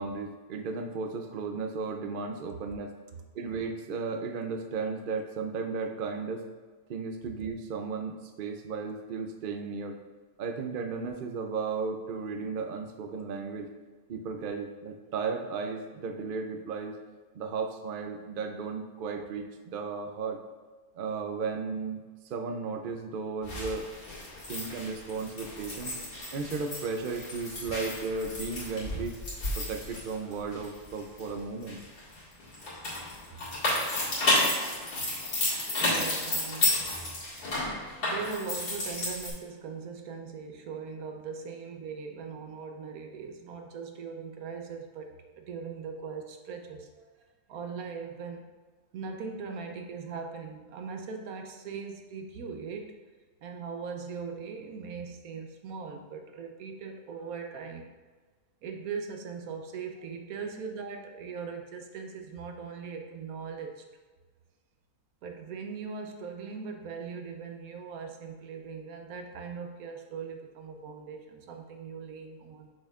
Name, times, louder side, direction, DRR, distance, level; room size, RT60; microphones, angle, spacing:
voice 1, 0.0-2.9 3.3-6.4 6.9-10.0 10.4-13.7 14.1-17.0 17.3-20.4 20.9-22.0 22.3-23.9 24.5-26.0 26.3-29.2 29.6-31.8, right 4 dB, 60° right, 5 dB, 0.5 m, -35 dB
sound 1, 23.4-31.2 31.6-39.3, left 1 dB, 85° left, 2.3 m, -32 dB
voice 2, 35.7-37.0 38.0-47.1 47.5-48.5 48.9-52.9 53.4-57.9 58.6-63.8 65.2-72.7, right 5 dB, 85° right, 4 dB, 1.2 m, -40 dB
6.3 x 6.2 x 2.4 m, 1.4 s
omnidirectional pair, 1.5 m